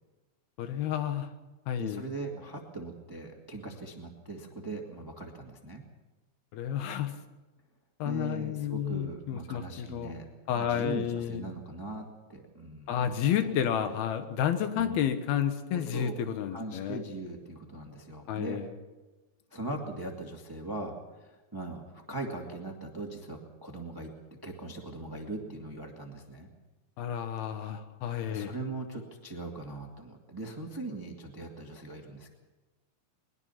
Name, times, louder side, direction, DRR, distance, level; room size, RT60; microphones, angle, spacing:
voice 1, 0.6-1.3 1.7-2.0 6.5-7.1 8.0-10.1 10.5-11.4 12.9-17.0 18.3-18.7 27.0-28.5, left 9 dB, 85° left, 8 dB, 3.3 m, -31 dB
voice 2, 1.8-5.8 8.0-10.3 10.5-13.5 14.8-15.0 15.7-16.1 16.5-18.6 19.5-24.1 24.4-26.5 28.3-32.3, right 2 dB, 10° right, 1 dB, 1.1 m, -40 dB
22.0 x 21.0 x 5.8 m, 1.1 s
omnidirectional pair, 4.3 m